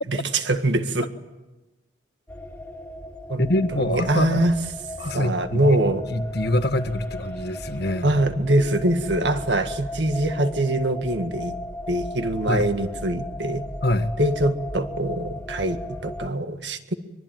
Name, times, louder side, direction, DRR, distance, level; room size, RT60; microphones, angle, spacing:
voice 1, 0.1-1.1 3.3-3.5 3.8-4.6 5.1-6.0 8.0-11.6 11.9-13.6 14.2-16.9, right 1 dB, 65° right, 8 dB, 1.8 m, -23 dB
sound 1, 2.3-16.3, left 1 dB, 10° left, 2.4 m, -36 dB
voice 2, 3.4-4.5 5.0-5.8 6.1-8.1 12.5-12.7 13.8-14.1, left 1 dB, 60° left, 9 dB, 1.6 m, -25 dB
24.5 x 23.5 x 9.2 m, 1.1 s
head